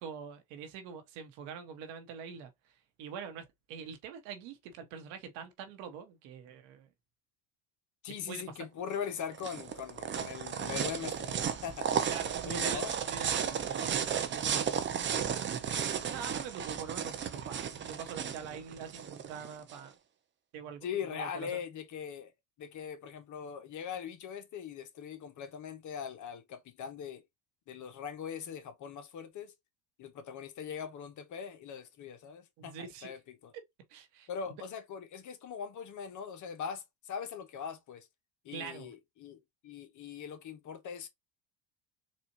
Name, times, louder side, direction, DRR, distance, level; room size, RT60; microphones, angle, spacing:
voice 1, 0.0-6.9 8.3-8.5 12.1-12.8 13.1-15.2 16.0-19.9 20.5-21.6 32.6-33.1 33.9-34.6 38.5-38.9, right 7 dB, 70° right, 1.2 m, -45 dB
voice 2, 8.0-11.9 12.4-12.9 20.8-22.3 22.6-27.2 27.7-29.5 30.0-33.5 34.3-38.1 38.4-41.1, left 7 dB, 45° left, 0.9 m, -41 dB
sound 1, 8.9-19.8, right 8 dB, 25° right, 0.6 m, -34 dB
4.2 x 2.4 x 2.7 m
supercardioid pair, 110°, 43 cm